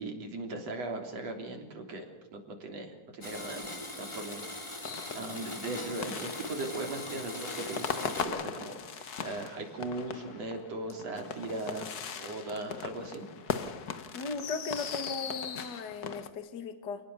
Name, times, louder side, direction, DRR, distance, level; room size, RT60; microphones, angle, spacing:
voice 1, 0.0-2.1 2.3-4.5 4.8-11.9 12.2-13.3, right 2 dB, 55° right, 3 dB, 4.4 m, -38 dB
Domestic sounds home sounds, 3.2-8.2, left 2 dB, 10° left, 2.1 m, -41 dB
sound 1, 4.8-16.3, left 7 dB, 65° left, 0.9 m, -39 dB
voice 2, 14.1-17.0, left 4 dB, 40° left, 8 dB, 2.1 m, -37 dB
28.0 x 19.5 x 6.9 m, 1.0 s
omnidirectional pair, 3.6 m